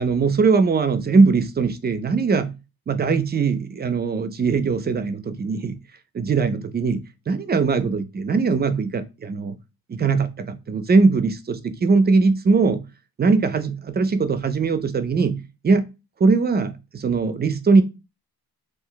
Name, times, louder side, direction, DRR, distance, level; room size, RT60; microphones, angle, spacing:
voice 1, 0.0-2.5 2.9-5.8 6.1-9.6 9.9-12.8 13.2-15.4 15.6-15.9 16.2-17.8, right 4 dB, 25° right, 0.3 m, -20 dB
2.4 x 2.1 x 3.8 m
cardioid pair, 85°, 39 cm